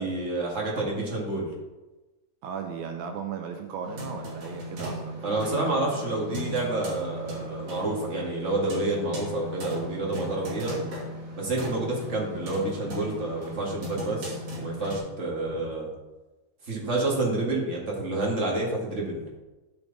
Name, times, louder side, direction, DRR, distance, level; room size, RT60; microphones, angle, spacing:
voice 1, 0.0-1.5 5.2-10.8 11.3-15.9 16.7-19.2, right 2 dB, 30° right, -2 dB, 1.5 m, -29 dB
voice 2, 2.4-6.2, right 6 dB, 75° right, 4 dB, 1.9 m, -37 dB
sound 1, 3.8-15.0, left 1 dB, 55° right, 3.3 m, -37 dB
10.5 x 6.1 x 4.0 m, 1.1 s
omnidirectional pair, 3.7 m